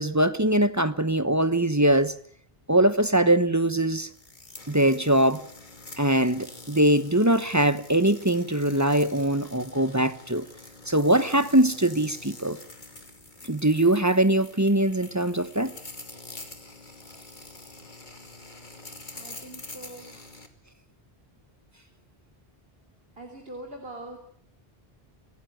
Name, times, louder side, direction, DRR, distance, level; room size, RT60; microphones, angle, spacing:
voice 1, 0.0-2.1 2.7-4.1 4.7-5.4 6.0-10.5 10.9-12.6 13.5-15.8, right 1 dB, 15° right, 12 dB, 1.1 m, -22 dB
sound 1, 4.1-20.5, left 2 dB, 50° left, 2.7 m, -46 dB
voice 2, 19.1-20.4 23.2-24.2, right 1 dB, 70° right, 3 dB, 3.6 m, -43 dB
27.5 x 17.5 x 9.3 m, 0.64 s
omnidirectional pair, 1.0 m